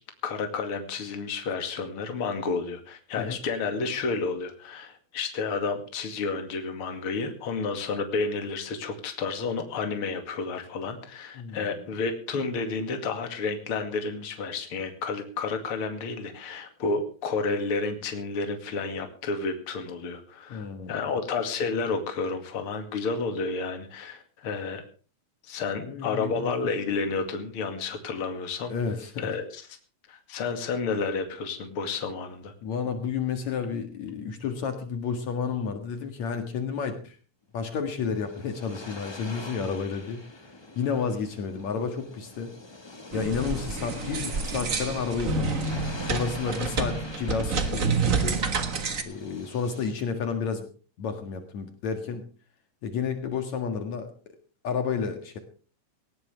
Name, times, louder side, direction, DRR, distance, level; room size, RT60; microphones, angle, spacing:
voice 1, 0.2-24.8 25.4-28.7 29.2-29.6 30.1-32.5, left 4 dB, 45° left, 6 dB, 2.9 m, -31 dB
voice 2, 11.4-11.7 20.5-21.1 25.8-26.5 28.7-29.3 32.6-37.2 37.5-40.5 40.8-42.5 43.1-45.6 46.0-48.4 48.6-48.7 49.0-50.7 51.0-52.2 52.8-54.1 54.6-55.4, left 6 dB, 65° left, 7 dB, 3.0 m, -31 dB
sound 1, 37.7-49.9, left 2 dB, 25° left, 0.5 m, -44 dB
sound 2, 43.1-49.0, right 4 dB, 40° right, 1.3 m, -28 dB
18.5 x 17.0 x 3.4 m, 0.38 s
omnidirectional pair, 3.6 m